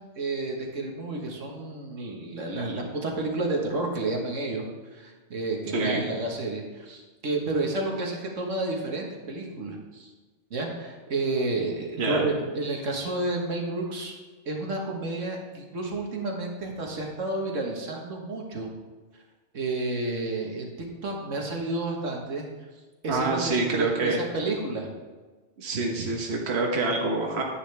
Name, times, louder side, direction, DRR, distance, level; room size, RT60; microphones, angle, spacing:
voice 1, 0.2-4.6 4.9-10.1 10.5-14.1 14.5-18.7 19.5-20.7 21.0-22.5 23.0-24.9, right 2 dB, 85° right, 0 dB, 1.8 m, -30 dB
voice 2, 5.7-6.0 12.0-12.2 23.1-24.2 25.6-27.4, right 3 dB, 60° right, 0 dB, 1.4 m, -26 dB
9.9 x 9.8 x 3.4 m, 1.3 s
omnidirectional pair, 1.3 m